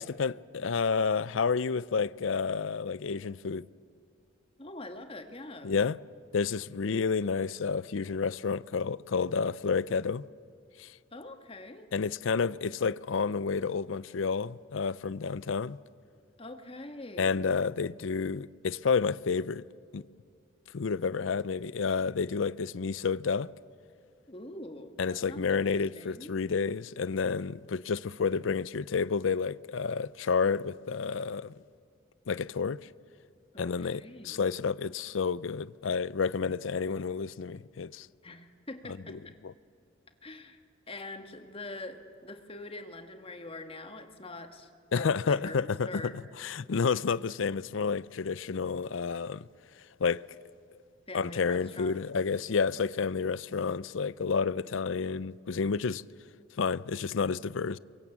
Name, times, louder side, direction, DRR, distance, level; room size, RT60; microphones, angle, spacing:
voice 1, 0.0-3.6 5.6-6.0 6.3-10.2 10.8-10.9 11.9-15.8 17.2-19.6 19.9-20.0 20.7-23.5 25.0-31.5 32.3-32.8 33.6-38.1 39.1-39.5 44.9-46.1 46.4-49.5 50.0-50.2 51.1-56.0 56.6-57.8, left 5 dB, 75° left, 0.5 m, -30 dB
voice 2, 4.6-5.7 11.1-11.9 16.4-17.4 24.3-26.4 33.5-34.4 38.2-39.3 40.2-40.6 40.9-46.2 51.1-52.0, left 2 dB, 30° left, 1.7 m, -44 dB
28.0 x 23.5 x 7.3 m
head